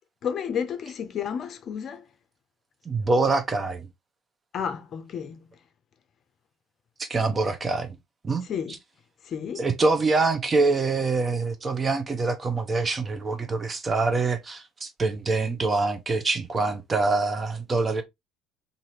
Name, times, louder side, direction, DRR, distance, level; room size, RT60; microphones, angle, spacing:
voice 1, 0.2-2.0 4.5-5.4 8.5-8.8 9.3-9.6, left 7 dB, 50° left, 0.5 m, -31 dB
voice 2, 2.9-3.9 7.0-8.0 8.2-8.5 9.6-18.0, right 3 dB, 30° right, 0.8 m, -25 dB
2.7 x 2.6 x 3.0 m
hypercardioid pair, 65°, 0 cm